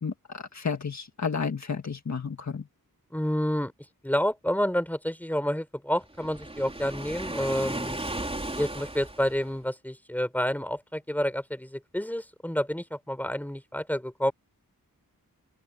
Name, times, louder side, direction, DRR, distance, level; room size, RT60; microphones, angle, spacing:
voice 1, 0.0-2.7, left 5 dB, 50° left, 1.7 m, -32 dB
voice 2, 3.1-3.7 4.0-8.0 8.6-14.3, equal, 5° left, 4.3 m, -29 dB
Waves surf, 6.1-9.6, right 1 dB, 15° right, 4.4 m, -35 dB
open air
wide cardioid pair, 115°, 35 cm